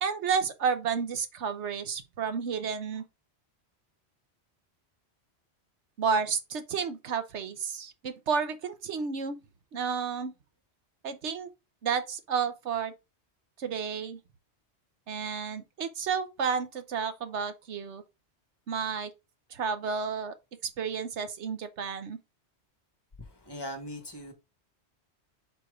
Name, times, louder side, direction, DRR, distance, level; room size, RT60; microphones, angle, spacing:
voice 1, 0.0-3.0 6.0-9.4 9.7-10.3 11.0-11.5 11.8-12.9 13.6-14.2 15.1-18.0 18.7-19.1 19.5-20.3 20.8-22.2, right 6 dB, 90° right, 1.2 m, -31 dB
voice 2, 23.2-24.3, left 1 dB, 20° left, 1.6 m, -40 dB
4.5 x 4.5 x 4.9 m
omnidirectional pair, 1.1 m